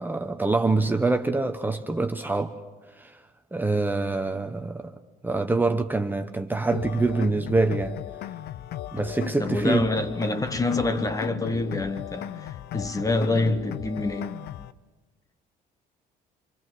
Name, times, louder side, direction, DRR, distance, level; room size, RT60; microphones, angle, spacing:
voice 1, 0.0-2.6 3.0-3.1 3.5-4.9 5.2-8.0 8.9-9.9, right 3 dB, 10° right, 1.0 m, -25 dB
sound 1, 6.7-14.7, left 12 dB, 70° left, 0.8 m, -36 dB
voice 2, 9.4-14.4, left 2 dB, 20° left, 1.2 m, -26 dB
26.0 x 24.5 x 6.2 m
cardioid pair, 110°, 17 cm